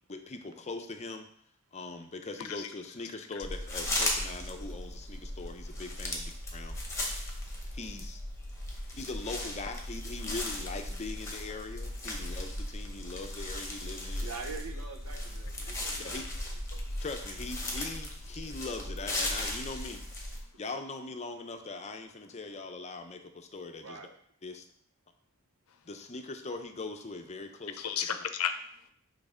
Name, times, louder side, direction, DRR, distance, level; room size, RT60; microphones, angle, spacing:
voice 1, 0.1-1.3 1.7-6.8 7.7-8.2 8.9-14.3 16.0-16.2 17.0-20.0 20.6-24.0 24.4-24.6 25.9-27.8, left 3 dB, 30° left, 0.5 m, -41 dB
voice 2, 2.4-2.7 3.3-3.5 15.8-16.0 16.7-17.0 25.7-25.8 27.7-28.9, left 8 dB, 80° left, 0.6 m, -36 dB
sound 1, 3.4-20.4, left 1 dB, 15° left, 1.0 m, -37 dB
voice 3, 14.2-16.5 23.8-24.1, right 4 dB, 80° right, 0.8 m, -44 dB
6.3 x 3.2 x 4.9 m
head